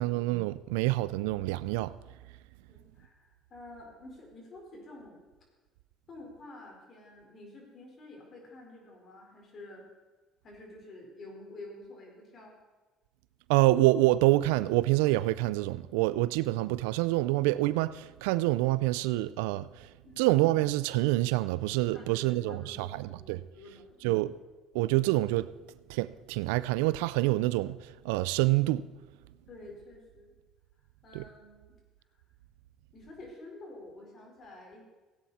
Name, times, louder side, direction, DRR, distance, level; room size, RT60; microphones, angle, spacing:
voice 1, 0.0-1.9 13.5-19.7 20.2-23.4 24.0-24.3 24.7-25.5 25.9-27.8 28.0-28.9 31.1-31.2, right 18 dB, 90° right, 0.4 m, -26 dB
voice 2, 2.7-5.3 6.1-9.9 10.4-12.6 20.0-20.3 21.9-24.2 29.5-30.4 31.0-31.8 32.9-34.9, left 2 dB, 45° left, 4.5 m, -49 dB
16.5 x 9.4 x 4.3 m
supercardioid pair, 85°, 0 cm